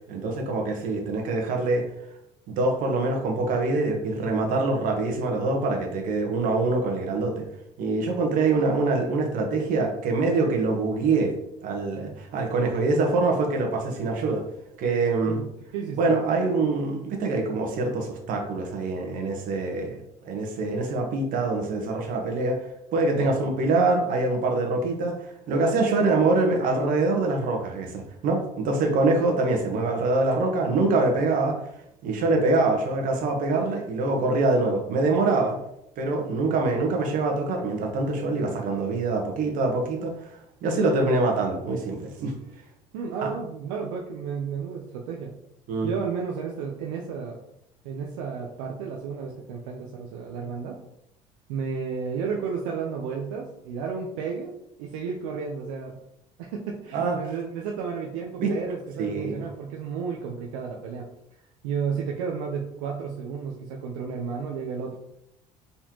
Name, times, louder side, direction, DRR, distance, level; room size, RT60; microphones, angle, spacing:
voice 1, 0.1-1.9 2.5-7.4 7.8-11.3 11.6-14.4 14.8-15.4 16.0-22.6 22.9-31.6 32.0-35.6 36.0-40.3 40.6-42.3 43.2-43.3 45.7-45.9 56.9-57.2 58.4-58.5 59.0-59.4, right 3 dB, 65° right, 2 dB, 1.1 m, -24 dB
voice 2, 15.3-16.1 23.2-23.3 42.9-45.4 45.8-47.4 47.8-50.8 51.5-54.5 54.8-56.0 56.4-61.1 61.6-65.0, right 6 dB, 85° right, -1 dB, 0.6 m, -32 dB
4.1 x 3.8 x 3.0 m, 0.79 s
supercardioid pair, 85°, 15 cm